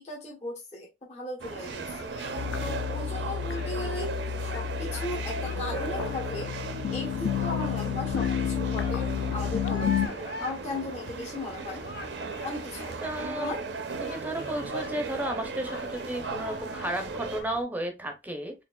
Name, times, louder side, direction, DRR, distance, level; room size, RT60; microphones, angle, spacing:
voice 1, 0.0-2.1 2.6-4.1 4.4-6.5 6.9-11.8 12.4-13.0 13.4-13.6, left 2 dB, 40° left, -3 dB, 1.0 m, -37 dB
sound 1, 1.4-17.4, right 4 dB, 80° right, 0.6 m, -37 dB
sound 2, 1.5-17.6, left 1 dB, 70° left, 0.9 m, -44 dB
sound 3, 2.4-10.1, left 9 dB, 90° left, 0.3 m, -31 dB
voice 2, 13.0-13.5 14.0-18.5, right 1 dB, 10° right, 5 dB, 0.6 m, -33 dB
4.4 x 3.2 x 2.3 m, 0.23 s
head